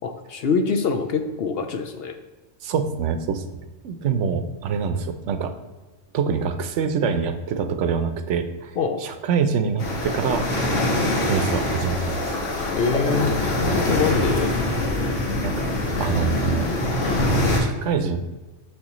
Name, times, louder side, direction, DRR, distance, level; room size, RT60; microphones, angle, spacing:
voice 1, 0.0-2.1 8.8-9.0 12.7-14.5, left 5 dB, 60° left, 6 dB, 0.8 m, -24 dB
voice 2, 2.6-3.4 3.8-5.5 6.1-8.7 9.0-10.5 11.2-12.5 15.4-15.7 16.0-16.7 17.6-18.2, right 6 dB, 75° right, 9 dB, 0.9 m, -25 dB
sound 1, 9.8-17.6, left 1 dB, 80° left, 1.6 m, -24 dB
6.3 x 6.3 x 3.0 m, 1.2 s
omnidirectional pair, 1.3 m